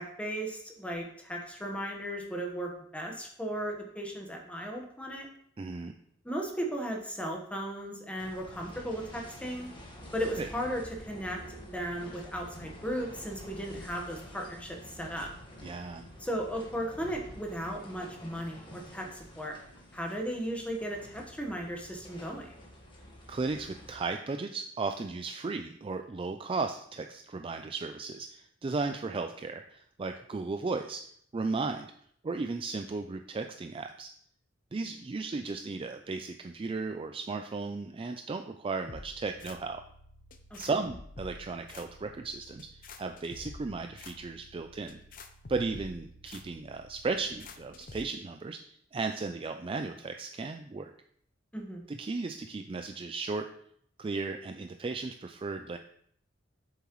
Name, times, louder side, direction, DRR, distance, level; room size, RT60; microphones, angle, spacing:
voice 1, 0.0-5.3 6.2-9.7 10.1-11.4 11.7-15.3 16.2-19.5 19.9-22.5 40.5-40.6 51.5-51.8, equal, 5° left, 1 dB, 1.2 m, -36 dB
voice 2, 5.6-6.0 10.4-10.5 15.6-16.1 23.3-31.0 31.3-31.9 32.2-34.1 34.7-39.8 40.6-45.0 45.5-50.9 51.9-53.5 54.0-55.8, right 3 dB, 30° right, 6 dB, 0.4 m, -35 dB
sound 1, 8.2-24.1, equal, 25° left, 1.4 m, -48 dB
sound 2, 38.9-48.0, left 2 dB, 45° left, 0.7 m, -49 dB
7.5 x 7.0 x 3.1 m, 0.66 s
head